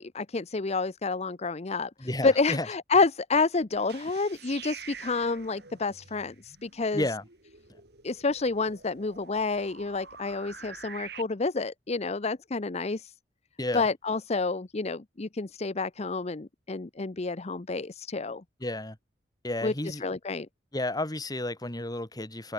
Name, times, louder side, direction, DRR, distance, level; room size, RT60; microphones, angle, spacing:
voice 1, 0.0-7.0 8.0-13.1 13.7-18.4 19.6-20.5, left 3 dB, 40° left, 0.7 m, -29 dB
voice 2, 2.0-2.7 6.9-7.2 13.6-13.8 18.6-19.0 19.4-20.0 20.7-22.5, left 1 dB, 20° left, 2.9 m, -32 dB
sound 1, 3.7-11.2, right 7 dB, 65° right, 5.5 m, -47 dB
head